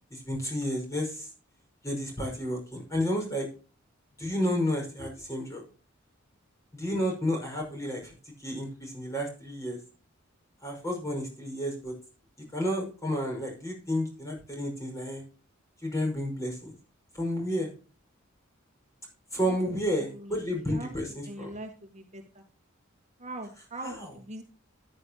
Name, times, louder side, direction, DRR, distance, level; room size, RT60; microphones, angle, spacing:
voice 1, 0.1-1.3 1.8-3.5 4.2-5.6 6.7-9.8 10.6-11.9 12.5-15.2 15.8-16.7 17.1-17.7 19.3-21.5 23.8-24.1, equal, 15° left, 1 dB, 5.5 m, -31 dB
voice 2, 19.4-19.8 20.1-20.3 20.7-20.9 21.2-22.4 23.2-24.4, right 1 dB, 35° right, 4 dB, 1.6 m, -42 dB
14.0 x 10.5 x 2.9 m, 0.36 s
head